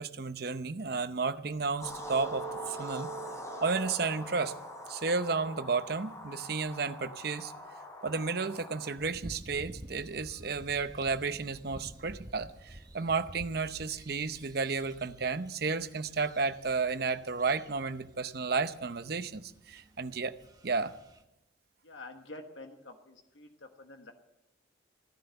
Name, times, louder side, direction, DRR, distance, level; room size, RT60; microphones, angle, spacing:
voice 1, 0.0-3.1 3.6-4.5 4.9-7.5 8.0-20.4 20.6-20.9, right 4 dB, 55° right, 11 dB, 0.7 m, -32 dB
sound 1, 1.8-8.9, right 1 dB, 15° left, 3.3 m, -42 dB
sound 2, 9.0-21.2, right 1 dB, 20° right, 1.0 m, -51 dB
voice 2, 21.8-24.1, left 2 dB, 75° left, 4 dB, 1.3 m, -48 dB
15.5 x 10.5 x 7.8 m, 0.88 s
head